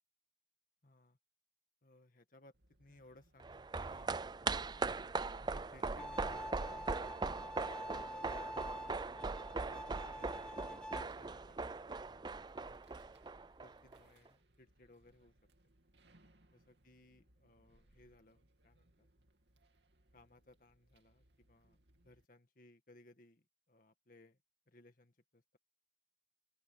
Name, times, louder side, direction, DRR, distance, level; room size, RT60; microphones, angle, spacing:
voice 1, 0.8-1.2 1.8-4.1 4.8-6.9 7.4-9.0 9.6-12.8 13.6-15.3 16.5-19.1 20.1-24.4 24.7-25.6, left 2 dB, 50° left, 1.9 m, -63 dB
sound 1, 2.5-22.2, right 1 dB, 80° right, 2.7 m, -70 dB
sound 2, 3.4-14.0 14.3-14.4, right 3 dB, 25° right, 0.5 m, -40 dB
Bowed string instrument, 6.0-11.0, equal, 5° left, 1.1 m, -47 dB
open air
head